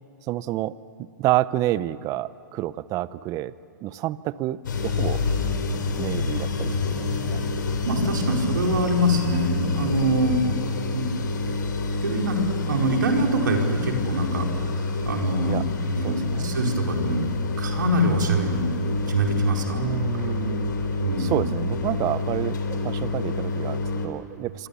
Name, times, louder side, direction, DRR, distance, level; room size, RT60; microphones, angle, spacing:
voice 1, 0.3-0.7 1.2-3.5 3.8-5.2 6.0-7.4 15.4-15.6 16.0-16.6 19.8-20.8 21.2-24.7, right 15 dB, 35° right, 17 dB, 0.8 m, -29 dB
sound 1, 4.6-24.1, left 3 dB, 85° left, 3.9 m, -27 dB
voice 2, 7.8-10.4 10.9-11.1 12.0-18.7 19.1-20.4 21.0-21.5, right 1 dB, 85° right, 1 dB, 4.7 m, -25 dB
27.0 x 25.0 x 7.1 m, 2.9 s
hypercardioid pair, 125°, 10 cm